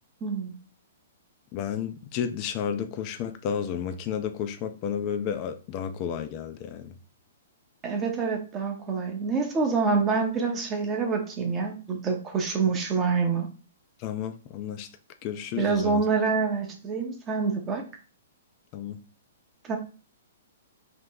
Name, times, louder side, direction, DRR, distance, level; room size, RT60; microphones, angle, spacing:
voice 1, 0.2-0.5 7.8-13.5 15.6-17.8 19.6-19.8, right 4 dB, 20° right, 0.7 m, -26 dB
voice 2, 1.5-6.9 14.0-14.9 15.2-16.0 18.7-19.0, left 8 dB, 35° left, 0.4 m, -32 dB
2.9 x 2.1 x 3.7 m
figure-of-eight pair, 115°, 0 cm